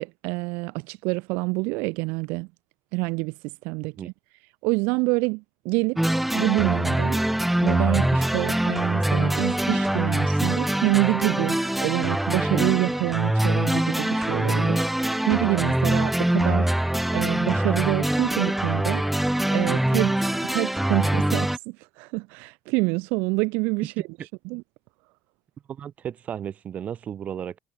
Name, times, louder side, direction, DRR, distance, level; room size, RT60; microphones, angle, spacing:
voice 1, 0.0-2.5 2.9-3.3 3.6-4.1 4.6-7.2 7.6-23.9 24.4-24.6, right 28 dB, 85° right, 1.2 m, -27 dB
sound 1, 6.0-21.6, right 1 dB, 5° right, 0.6 m, -24 dB
voice 2, 25.7-27.6, right 9 dB, 55° right, 5.7 m, -34 dB
supercardioid pair, 80°, 3 cm